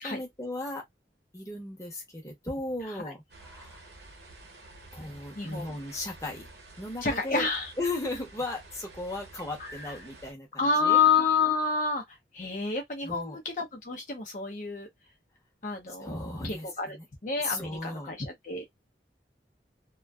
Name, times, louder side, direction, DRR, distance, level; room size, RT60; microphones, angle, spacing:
voice 1, 0.0-0.8 1.3-3.9 4.9-6.5 6.8-7.5 7.8-11.0 13.0-13.4 16.0-17.1 17.4-18.1, left 2 dB, 15° left, 0.8 m, -36 dB
sound 1, 3.3-10.3, right 2 dB, 65° right, 0.9 m, -50 dB
voice 2, 5.4-5.8 7.0-7.7 9.6-9.9 10.6-14.9 15.6-16.2 16.4-17.0 17.2-18.6, left 5 dB, 45° left, 0.6 m, -28 dB
2.5 x 2.2 x 2.3 m
head